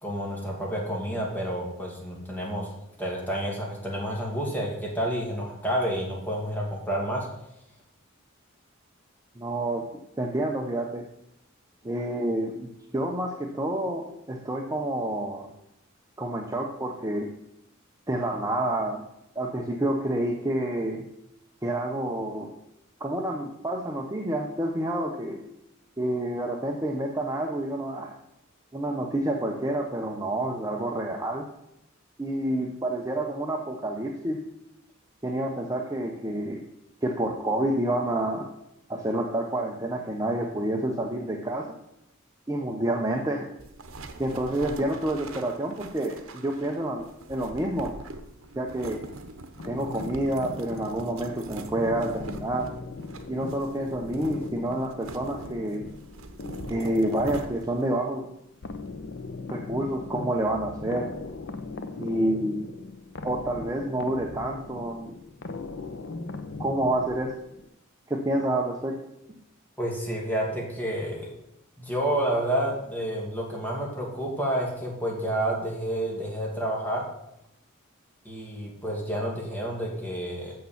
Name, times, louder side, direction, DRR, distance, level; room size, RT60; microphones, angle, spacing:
voice 1, 0.0-2.7 3.0-7.3 69.8-71.3 71.8-77.0 78.2-80.5, right 1 dB, 10° left, -2 dB, 2.4 m, -29 dB
voice 2, 9.4-9.8 10.2-11.1 11.8-12.7 12.9-15.5 16.2-17.3 18.1-19.0 19.4-21.0 21.6-22.5 23.0-25.4 26.0-28.1 28.7-31.5 32.2-34.4 35.2-36.7 37.0-38.5 38.9-41.8 42.5-43.5 44.2-47.9 48.6-49.0 49.6-52.7 53.3-55.8 56.7-58.2 59.5-61.1 62.0-62.6 63.2-65.1 66.6-67.3 68.1-69.0, right 1 dB, 15° right, 1 dB, 0.7 m, -28 dB
sound 1, 43.6-57.9, right 2 dB, 80° right, 0.9 m, -43 dB
sound 2, 49.6-67.7, left 3 dB, 60° left, 0.8 m, -39 dB
6.9 x 6.6 x 7.1 m, 0.82 s
head